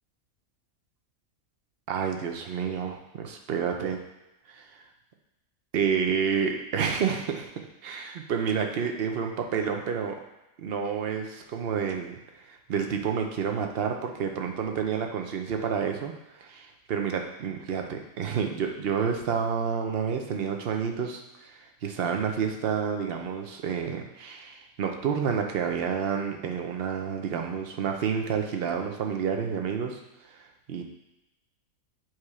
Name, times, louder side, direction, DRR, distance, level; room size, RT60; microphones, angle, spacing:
voice 1, 1.9-4.0 4.5-4.8 5.7-7.5 7.8-10.2 10.6-12.2 12.5-16.1 16.4-30.0 30.3-30.4 30.7-30.8, right 7 dB, 55° right, 3 dB, 0.8 m, -29 dB
7.7 x 3.0 x 4.8 m, 0.96 s
omnidirectional pair, 1.5 m